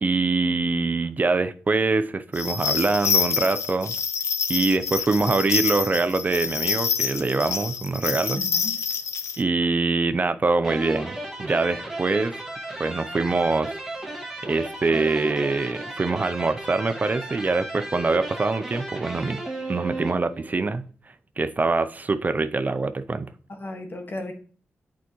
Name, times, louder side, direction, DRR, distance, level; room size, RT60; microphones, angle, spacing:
voice 1, 0.0-3.9 4.5-8.4 9.4-12.4 12.8-13.8 14.4-19.4 19.7-20.8 21.4-23.3, right 3 dB, 35° right, 0.5 m, -24 dB
sound 1, 2.3-9.4, left 6 dB, 75° left, 0.7 m, -27 dB
voice 2, 8.4-8.8 23.5-24.3, left 1 dB, 45° left, 1.5 m, -35 dB
sound 2, 10.6-20.6, right 2 dB, 5° right, 1.9 m, -35 dB
8.3 x 4.7 x 3.0 m
cardioid pair, 65°, 5 cm